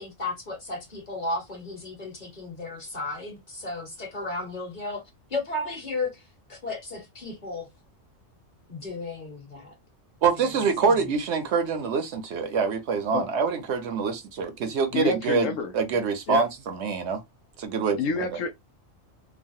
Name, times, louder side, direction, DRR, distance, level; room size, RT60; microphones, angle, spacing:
voice 1, 0.0-5.0 5.3-6.2 6.5-7.7 8.7-9.7 10.8-10.9, left 2 dB, 40° left, 1.5 m, -34 dB
voice 2, 10.2-15.4 15.7-17.2 17.6-18.0, right 5 dB, 65° right, 0.9 m, -25 dB
voice 3, 14.9-15.7 16.3-16.5 18.0-18.5, left 4 dB, 85° left, 1.1 m, -28 dB
3.1 x 2.3 x 2.5 m
omnidirectional pair, 1.3 m